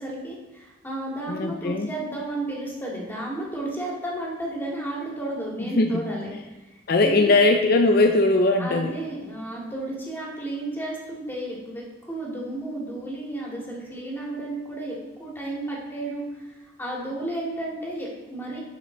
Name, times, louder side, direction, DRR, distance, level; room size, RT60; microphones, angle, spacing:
voice 1, 0.0-6.3 7.0-7.4 8.6-16.5 16.8-18.6, right 1 dB, 10° left, -4 dB, 2.2 m, -32 dB
voice 2, 1.3-1.9 5.8-6.0 6.9-9.0, left 2 dB, 55° left, 4 dB, 0.5 m, -20 dB
12.0 x 5.6 x 3.9 m, 1.1 s
head